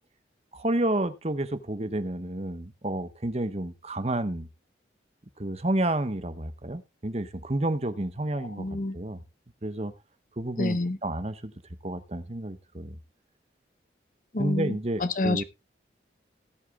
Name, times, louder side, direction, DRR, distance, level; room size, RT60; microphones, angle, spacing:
voice 1, 0.5-4.5 5.4-8.7 8.9-9.2 9.6-9.9 10.4-11.5 11.8-13.0 14.4-15.4, right 1 dB, 35° right, 1.1 m, -30 dB
voice 2, 8.4-9.0 10.6-11.0 14.3-15.4, left 2 dB, 45° left, 1.0 m, -28 dB
19.0 x 8.3 x 2.3 m
head